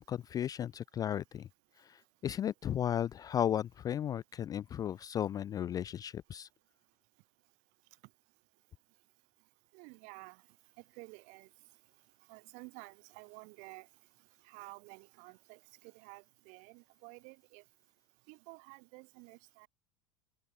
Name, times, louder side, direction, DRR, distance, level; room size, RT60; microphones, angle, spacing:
voice 1, 0.0-1.5 1.8-6.5, left 10 dB, 25° left, 0.3 m, -35 dB
voice 2, 9.7-10.4 11.0-11.5 12.3-13.9 14.4-17.6 18.3-19.7, right 30 dB, 50° right, 2.3 m, -52 dB
figure-of-eight pair, 75°, 16 cm